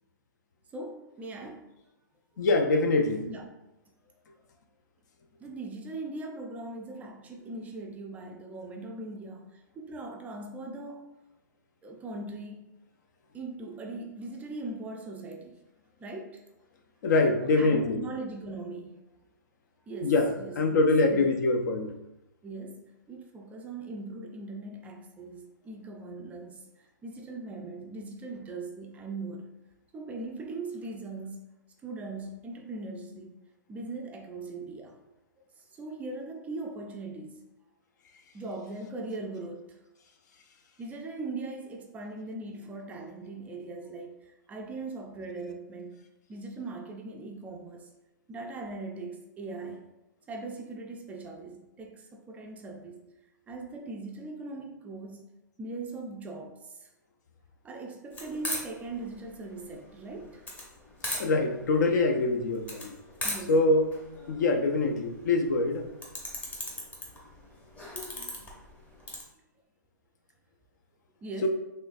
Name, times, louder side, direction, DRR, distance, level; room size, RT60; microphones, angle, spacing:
voice 1, 0.7-1.7 3.3-3.5 5.4-11.1 11.8-12.7 13.3-15.6 16.0-16.4 17.6-18.9 19.9-21.4 22.4-29.6 29.9-33.4 33.7-35.0 35.6-37.5 38.3-39.8 40.8-46.0 46.3-47.9 48.3-49.9 50.3-53.0 53.5-55.3 55.6-56.9 57.6-60.4 63.2-63.6 71.2-71.5, right 2 dB, 15° right, 1 dB, 0.4 m, -40 dB
voice 2, 2.4-3.3 17.0-18.1 20.0-22.0 61.2-63.0 63.5-63.9 64.3-65.9 71.4-71.5, left 2 dB, 60° left, 5 dB, 0.6 m, -24 dB
sound 1, 58.1-69.2, left 1 dB, 15° left, 0.8 m, -39 dB
3.7 x 3.1 x 2.6 m, 0.93 s
hypercardioid pair, 130°, 11 cm